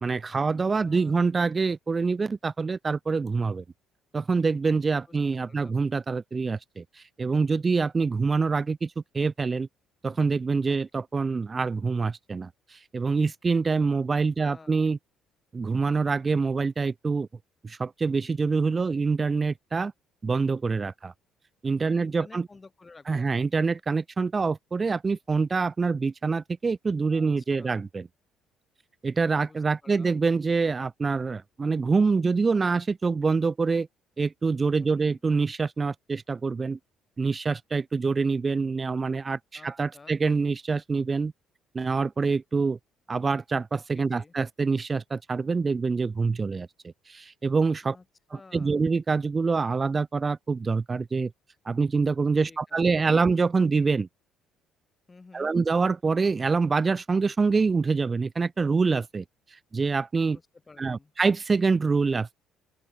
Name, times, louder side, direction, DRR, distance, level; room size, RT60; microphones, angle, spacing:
voice 1, 0.0-3.6 4.1-6.8 7.2-9.7 10.0-12.5 12.9-15.0 15.5-17.3 17.6-19.9 20.2-21.1 21.6-22.5 23.1-28.0 29.0-33.9 34.2-36.8 37.2-41.3 41.7-42.8 43.1-46.7 47.1-48.0 48.5-51.3 51.7-54.1 55.3-59.2 59.7-60.4 60.8-62.3, right 4 dB, 25° right, 0.5 m, -25 dB
voice 2, 0.8-1.3 5.1-5.2 5.4-5.8 10.7-11.0 13.7-14.1 14.4-14.8 21.8-23.5 27.1-27.8 29.4-30.2 34.8-35.2 39.5-40.2 43.9-44.3 47.8-48.0 48.3-48.8 52.4-53.1 55.1-55.5 60.2-61.1, left 3 dB, 20° left, 6.8 m, -53 dB
open air
cardioid pair, 120°, 0 cm